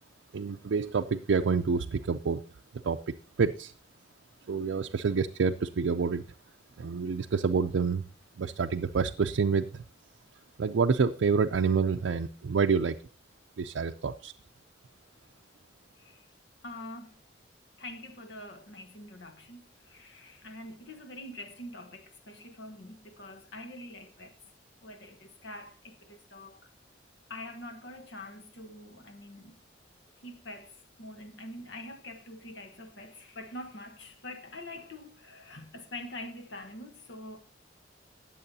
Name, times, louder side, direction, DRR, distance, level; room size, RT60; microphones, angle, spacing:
voice 1, 0.3-2.4 2.8-3.7 4.5-6.2 6.8-8.1 8.4-9.8 10.6-13.0 13.6-14.3, right 5 dB, 85° right, 0.4 m, -28 dB
voice 2, 16.6-17.2 17.8-24.4 24.8-26.7 27.3-29.6 30.2-30.7 31.0-37.4, left 1 dB, 70° left, 1.1 m, -45 dB
19.5 x 7.5 x 2.7 m
head